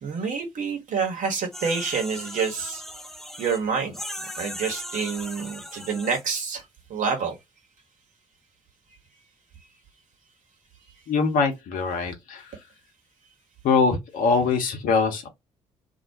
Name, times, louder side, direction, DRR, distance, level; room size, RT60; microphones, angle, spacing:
voice 1, 0.0-2.8 3.4-3.9 4.4-6.6 6.9-7.4, right 5 dB, 50° right, 1.1 m, -27 dB
sound 1, 1.5-3.6 3.9-6.2, left 1 dB, ahead, 0.4 m, -38 dB
voice 2, 11.1-12.4 13.6-15.3, left 4 dB, 55° left, 0.8 m, -23 dB
2.4 x 2.1 x 2.7 m
figure-of-eight pair, 45°, 17 cm